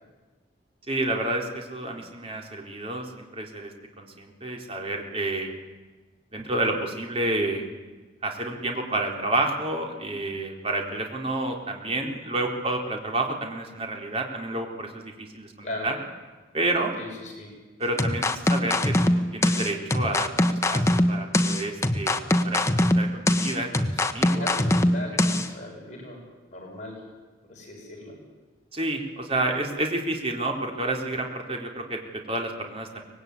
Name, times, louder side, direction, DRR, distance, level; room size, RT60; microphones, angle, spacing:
voice 1, 0.9-3.7 4.0-5.6 6.3-7.7 8.2-16.0 16.5-16.9 17.8-22.7 23.0-23.9 24.1-24.4 28.7-33.0, right 2 dB, 30° right, 2 dB, 3.9 m, -30 dB
voice 2, 17.0-17.5 24.2-26.2 26.5-27.0 27.4-28.2, left 1 dB, 40° left, -1 dB, 7.7 m, -38 dB
sound 1, 18.0-25.5, left 1 dB, 15° left, 1.1 m, -22 dB
24.5 x 20.0 x 9.7 m, 1.3 s
head